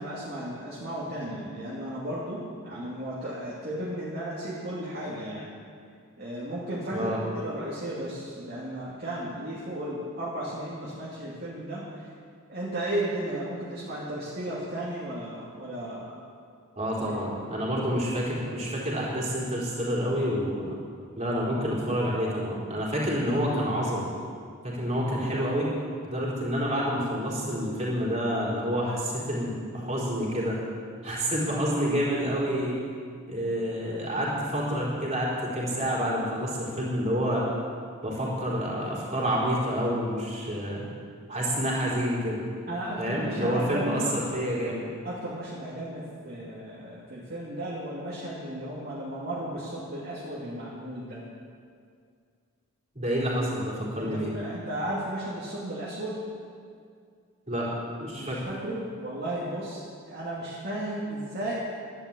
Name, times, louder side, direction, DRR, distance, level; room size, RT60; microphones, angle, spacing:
voice 1, 0.0-5.5 6.2-12.1 12.5-16.1 17.0-17.2 42.7-44.1 45.0-51.2 54.0-56.2 58.2-61.5, right 1 dB, 45° right, -8 dB, 2.6 m, -34 dB
voice 2, 16.8-20.7 21.2-24.1 24.6-25.7 26.1-30.6 31.0-32.8 33.3-37.4 38.0-40.8 41.3-42.5 43.0-44.9 52.9-54.3 57.5-57.7 58.0-58.4, equal, 30° right, -6 dB, 4.4 m, -28 dB
12.0 x 11.5 x 8.5 m, 2.2 s
head